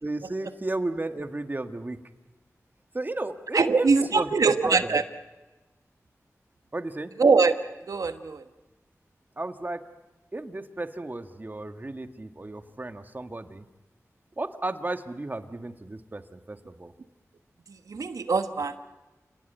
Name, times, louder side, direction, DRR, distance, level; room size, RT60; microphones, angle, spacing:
voice 1, 0.0-2.0 2.9-5.0 6.7-7.1 9.4-9.8 10.3-13.7 14.4-16.9, right 2 dB, 35° right, 7 dB, 1.7 m, -33 dB
voice 2, 3.5-5.0 7.2-7.6 7.9-8.4 17.9-18.8, right 4 dB, 90° right, 9 dB, 1.3 m, -22 dB
29.5 x 18.5 x 9.2 m, 1.1 s
wide cardioid pair, 70°, 6 cm